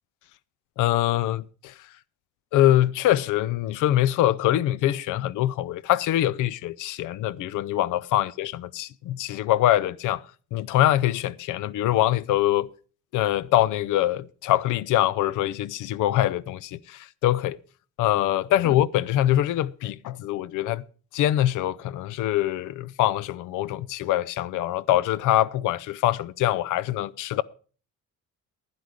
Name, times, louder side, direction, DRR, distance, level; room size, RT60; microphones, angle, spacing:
voice 1, 0.8-1.7 2.5-10.2 10.5-12.7 13.1-17.6 18.0-20.8 21.1-27.4, left 13 dB, 80° left, 0.6 m, -24 dB
12.0 x 10.0 x 4.9 m
cardioid pair, 160°, 30 cm